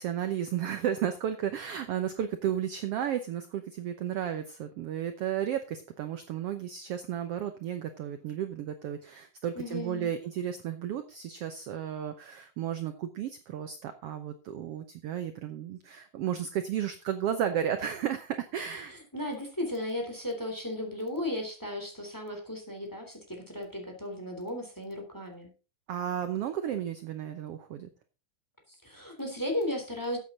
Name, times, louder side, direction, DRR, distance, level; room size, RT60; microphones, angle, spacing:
voice 1, 0.0-18.9 25.9-27.9, right 9 dB, 75° right, 8 dB, 1.4 m, -33 dB
voice 2, 9.5-10.1 19.1-25.5 28.8-30.2, left 1 dB, 5° left, 3 dB, 3.0 m, -35 dB
14.0 x 8.3 x 3.9 m, 0.32 s
omnidirectional pair, 3.8 m